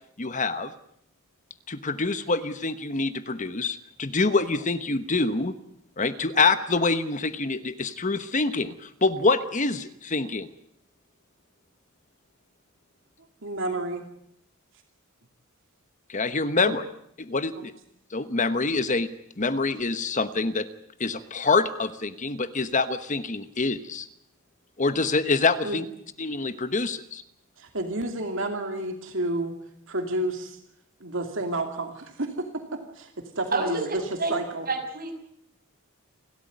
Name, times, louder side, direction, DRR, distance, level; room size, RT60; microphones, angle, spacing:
voice 1, 0.2-0.7 1.7-5.5 6.0-10.5 16.1-16.8 17.2-17.7 18.1-19.1 19.4-20.7 21.0-24.1 24.8-25.8 26.2-27.2, left 3 dB, 35° left, 12 dB, 1.1 m, -26 dB
voice 2, 13.4-14.1 16.7-16.8 17.6-17.7 25.6-25.8 27.6-29.5 29.9-30.6 31.0-34.0 34.3-34.7, right 1 dB, 60° right, 5 dB, 2.6 m, -30 dB
voice 3, 34.7-35.1, right 3 dB, 45° right, 3 dB, 6.1 m, -27 dB
29.0 x 13.0 x 9.5 m, 0.74 s
head